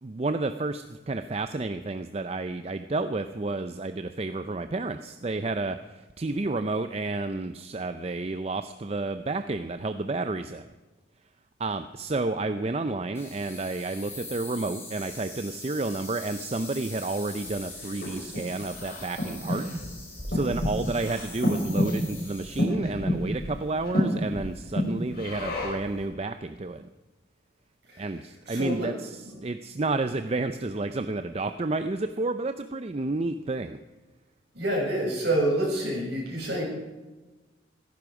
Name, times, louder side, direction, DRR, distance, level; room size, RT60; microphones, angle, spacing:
voice 1, 0.0-10.7 11.6-19.7 20.3-26.9 28.0-33.8, right 2 dB, 30° right, 9 dB, 0.5 m, -31 dB
sound 1, 13.1-22.6, left 2 dB, 15° left, 4.4 m, -43 dB
Breathing, 17.4-25.9, equal, 50° left, 4.9 m, -30 dB
voice 2, 28.5-28.9 34.5-36.6, right 1 dB, 55° right, -2 dB, 6.5 m, -27 dB
16.0 x 14.5 x 4.8 m, 1.2 s
head